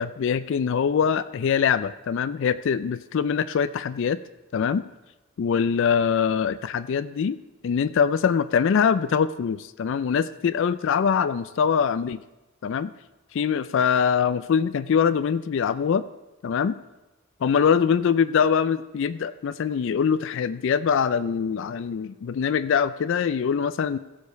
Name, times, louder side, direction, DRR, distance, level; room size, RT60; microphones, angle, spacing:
voice 1, 0.0-4.2 4.5-4.8 5.4-7.4 7.6-12.2 12.6-12.9 13.3-16.0 16.4-16.8 17.4-24.0, left 7 dB, 65° left, 15 dB, 0.4 m, -23 dB
15.0 x 5.2 x 6.5 m, 1.0 s
head